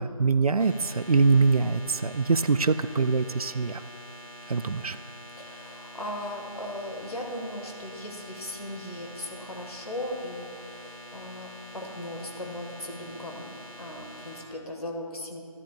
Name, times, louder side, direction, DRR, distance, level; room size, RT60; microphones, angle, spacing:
voice 1, 0.0-3.8 4.5-5.0, right 4 dB, 75° right, 12 dB, 0.4 m, -23 dB
sound 1, 0.6-14.4, left 1 dB, 60° left, 2.3 m, -46 dB
voice 2, 5.4-13.5 13.8-15.4, left 1 dB, 75° left, 1 dB, 1.8 m, -37 dB
13.5 x 10.5 x 2.5 m, 2.6 s
figure-of-eight pair, 175°, 19 cm